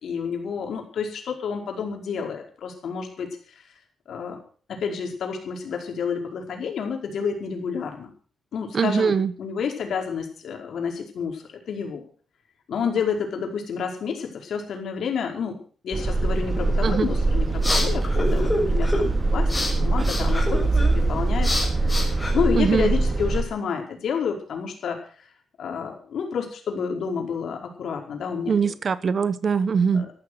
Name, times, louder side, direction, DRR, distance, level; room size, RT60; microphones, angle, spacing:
voice 1, 0.0-3.6 4.1-4.4 4.7-8.1 8.5-12.1 12.7-19.5 19.8-20.6 20.9-21.5 21.8-25.3 25.6-28.5 29.9-30.0, left 6 dB, 70° left, 4.9 m, -29 dB
voice 2, 8.7-9.3 16.8-17.1 22.5-22.9 28.5-30.1, right 6 dB, 45° right, 0.9 m, -22 dB
sound 1, 15.9-23.4, right 2 dB, 30° right, 2.2 m, -23 dB
sound 2, 17.1-23.0, left 1 dB, 10° left, 7.5 m, -29 dB
14.0 x 12.5 x 6.5 m
cardioid pair, 110°, 0 cm